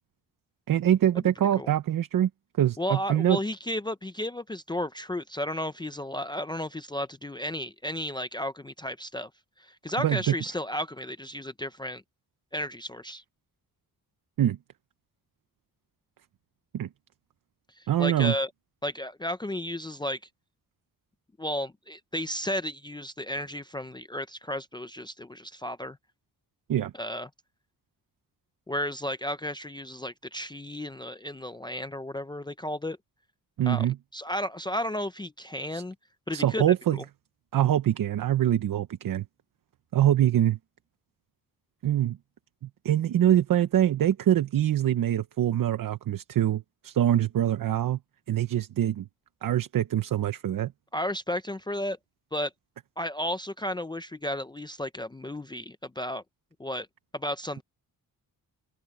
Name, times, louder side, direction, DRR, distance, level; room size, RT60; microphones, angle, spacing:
voice 1, 0.7-2.3 2.6-3.4 10.0-10.3 14.4-14.6 16.7-16.9 17.9-18.3 26.7-26.9 33.6-34.0 35.7-35.8 36.3-37.0 37.5-39.2 39.9-40.6 41.8-42.2 42.8-48.0 48.3-49.0 49.4-50.7, right 11 dB, 65° right, 0.8 m, -24 dB
voice 2, 2.8-9.3 9.6-12.0 12.5-13.2 17.8-18.5 18.8-20.2 21.4-26.0 26.9-27.3 28.7-33.0 33.7-33.9 34.1-35.9 36.3-36.6 36.9-37.0 50.9-52.0 52.3-52.5 53.0-56.2 56.6-56.9 57.1-57.6, left 1 dB, 10° left, 0.5 m, -33 dB
open air
wide cardioid pair, 140°, 36 cm